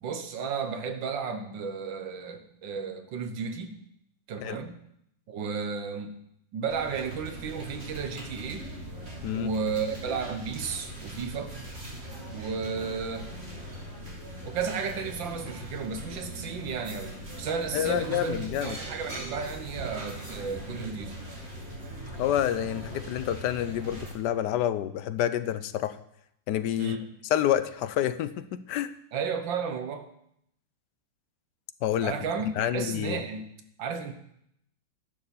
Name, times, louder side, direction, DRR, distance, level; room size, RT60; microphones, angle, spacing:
voice 1, 0.0-3.8 4.3-4.8 5.3-6.2 6.5-8.7 9.3-11.6 12.3-13.3 14.4-21.3 26.8-27.1 29.1-30.1 32.0-33.5 33.8-34.1, right 5 dB, 80° right, 7 dB, 1.8 m, -33 dB
sound 1, 6.7-24.1, right 1 dB, 35° right, 2.5 m, -40 dB
voice 2, 17.7-18.8 22.2-26.0 26.5-27.0 27.3-28.9 31.8-32.1 32.6-33.2, left 11 dB, 70° left, 13 dB, 1.2 m, -28 dB
11.5 x 6.7 x 6.9 m, 0.74 s
omnidirectional pair, 2.0 m